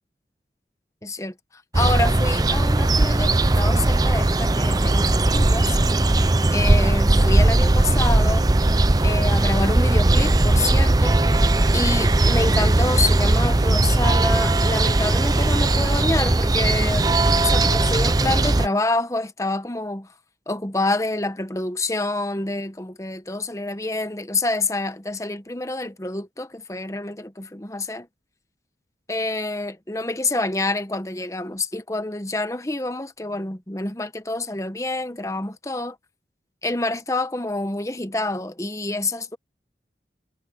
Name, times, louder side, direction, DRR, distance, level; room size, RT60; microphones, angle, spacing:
voice 1, 1.0-5.8 6.5-8.5 9.0-11.2 11.7-20.1 20.5-28.1 29.1-36.0 36.6-39.4, left 2 dB, 20° left, 1.0 m, -27 dB
sound 1, 1.7-18.7, right 2 dB, 20° right, 0.5 m, -18 dB
head